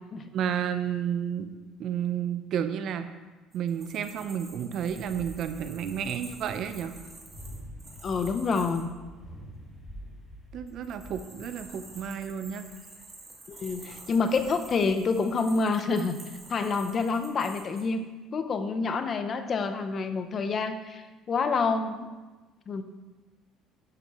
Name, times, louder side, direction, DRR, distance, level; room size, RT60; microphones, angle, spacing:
voice 1, 0.3-1.5 1.8-3.1 3.5-7.0 10.5-12.7, right 8 dB, 50° right, 9 dB, 0.7 m, -31 dB
sound 1, 3.5-8.8 10.7-17.8, right 2 dB, 20° right, 2.3 m, -49 dB
sound 2, 4.8-13.0, equal, 15° left, 2.6 m, -47 dB
voice 2, 8.0-8.9 13.5-16.2 16.5-18.0 18.3-22.1 22.7-22.8, left 4 dB, 35° left, 9 dB, 0.8 m, -28 dB
11.0 x 10.5 x 3.1 m, 1.2 s
cardioid pair, 135°, 0 cm